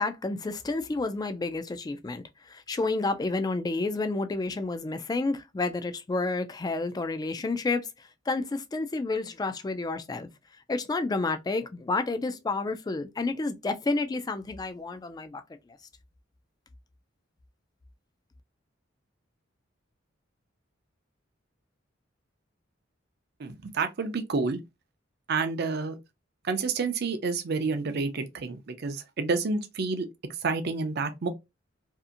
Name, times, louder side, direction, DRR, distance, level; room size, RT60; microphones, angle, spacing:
voice 1, 0.0-10.3 10.7-15.4, left 3 dB, 20° left, 0.3 m, -30 dB
voice 2, 23.4-24.6 25.3-26.0 26.4-30.1 30.4-31.3, right 4 dB, 55° right, 0.5 m, -29 dB
2.7 x 2.5 x 2.4 m
head